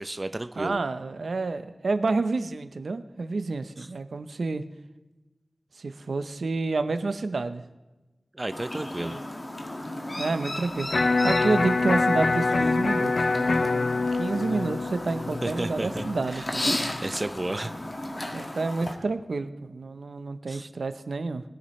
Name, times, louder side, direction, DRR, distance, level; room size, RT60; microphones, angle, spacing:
voice 1, 0.0-0.8 3.8-3.9 8.3-9.2 15.4-16.0 16.3-16.5 16.8-17.7 20.5-20.7, right 2 dB, 35° right, 10 dB, 0.6 m, -32 dB
voice 2, 0.6-4.6 5.8-7.6 8.8-9.2 10.2-10.9 11.2-16.8 18.3-21.4, right 3 dB, 85° right, 10 dB, 0.8 m, -29 dB
Chirp tweet, 8.5-18.9, left 1 dB, 40° left, 1.9 m, -35 dB
Electric guitar, 10.9-17.0, left 3 dB, 75° left, 0.5 m, -25 dB
20.5 x 9.9 x 3.2 m, 1.1 s
wide cardioid pair, 55°, 0 cm